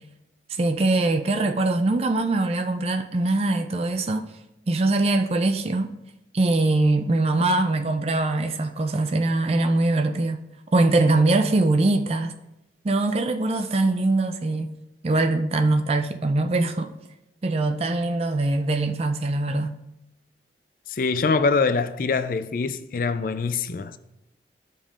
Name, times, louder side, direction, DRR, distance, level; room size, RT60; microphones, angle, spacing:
voice 1, 0.5-4.3 4.7-6.0 6.3-10.4 10.7-12.3 12.8-14.8 15.0-16.9 17.4-19.7, right 2 dB, 35° right, 0.4 m, -22 dB
voice 2, 20.9-24.0, left 4 dB, 50° left, 0.4 m, -24 dB
13.0 x 5.3 x 2.5 m
head